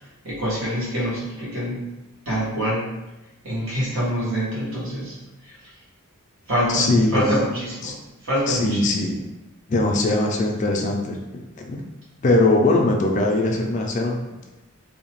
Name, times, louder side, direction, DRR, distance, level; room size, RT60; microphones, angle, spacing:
voice 1, 0.2-1.8 2.2-2.9 3.4-5.2 5.4-5.5 6.5-7.9 8.2-9.1, equal, 60° right, -8 dB, 1.2 m, -25 dB
voice 2, 6.7-7.3 7.8-7.9 8.5-9.1 9.7-11.8 12.2-14.2, left 2 dB, 35° left, 1 dB, 0.3 m, -21 dB
2.7 x 2.1 x 2.9 m, 1.0 s
head